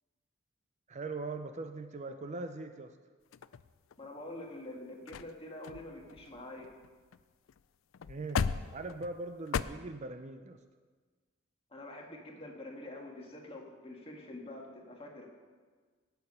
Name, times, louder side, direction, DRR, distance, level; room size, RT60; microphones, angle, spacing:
voice 1, 0.9-2.9 8.1-10.6, right 3 dB, 35° right, 8 dB, 0.6 m, -41 dB
sound 1, 3.3-4.2 4.7-4.8 5.1-5.3 5.6-7.2 7.5-7.6 7.9-9.6, left 6 dB, 90° left, 0.4 m, -37 dB
voice 2, 4.0-6.7 11.7-15.3, left 1 dB, 30° left, 0 dB, 1.9 m, -46 dB
17.5 x 7.0 x 5.6 m, 1.5 s
head